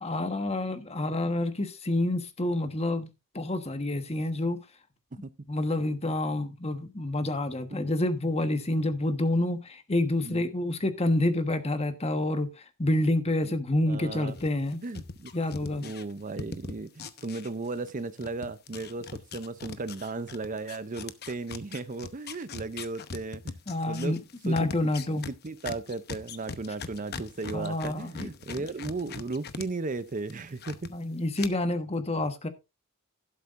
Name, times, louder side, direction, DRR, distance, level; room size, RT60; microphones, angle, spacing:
voice 1, 0.0-3.1 3.3-4.6 5.5-14.8 15.3-15.8 23.7-25.3 27.5-28.3 28.6-28.7 30.9-32.5, left 1 dB, 30° left, 1.3 m, -28 dB
voice 2, 13.9-14.4 14.8-15.3 15.6-23.6 23.9-24.2 24.5-24.7 25.1-30.9, right 3 dB, 35° right, 0.6 m, -35 dB
sound 1, 14.3-17.9 18.2-29.7 30.0-30.9 31.3-31.5, left 4 dB, 45° left, 0.9 m, -41 dB
12.0 x 11.5 x 2.6 m
head